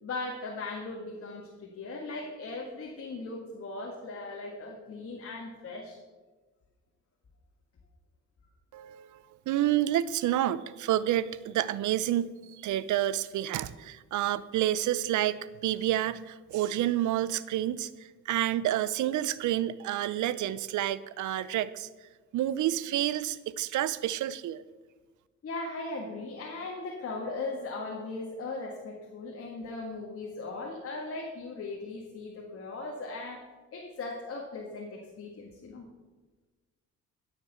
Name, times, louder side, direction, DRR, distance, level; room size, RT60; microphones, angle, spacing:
voice 1, 0.0-6.0 25.4-33.4 33.7-35.9, left 3 dB, 50° left, -1 dB, 1.9 m, -38 dB
voice 2, 8.7-21.9 22.3-24.6, right 13 dB, 75° right, 17 dB, 0.6 m, -29 dB
12.5 x 6.9 x 6.8 m, 1.3 s
cardioid pair, 90°, 30 cm